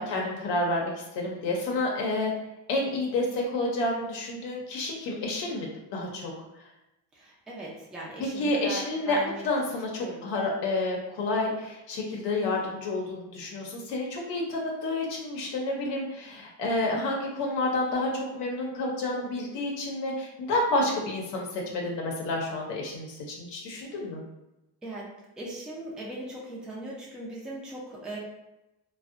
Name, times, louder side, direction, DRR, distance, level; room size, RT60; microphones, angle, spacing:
voice 1, 0.0-2.3 2.7-6.3 8.4-9.2 9.4-24.2, left 2 dB, 85° left, -1 dB, 0.6 m, -29 dB
voice 2, 7.2-9.4 10.0-10.3 23.9-24.0 24.8-25.1 25.4-28.2, right 1 dB, ahead, -5 dB, 0.4 m, -39 dB
2.5 x 2.1 x 2.4 m, 0.94 s
cardioid pair, 120°, 41 cm